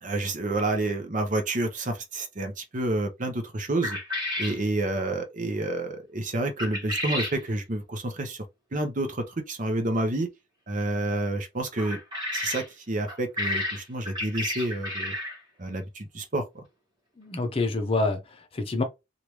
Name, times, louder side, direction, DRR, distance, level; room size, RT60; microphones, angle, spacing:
voice 1, 0.0-4.0 4.4-8.4 8.7-10.3 10.7-12.0 12.3-15.1 15.6-16.6, right 2 dB, 45° right, 0.7 m, -29 dB
sound 1, 3.8-4.6 6.6-7.4 11.8-12.7 13.1-15.4, left 1 dB, 25° right, 1.4 m, -31 dB
voice 2, 17.2-18.8, left 3 dB, 30° left, 0.7 m, -27 dB
3.2 x 2.5 x 3.0 m
head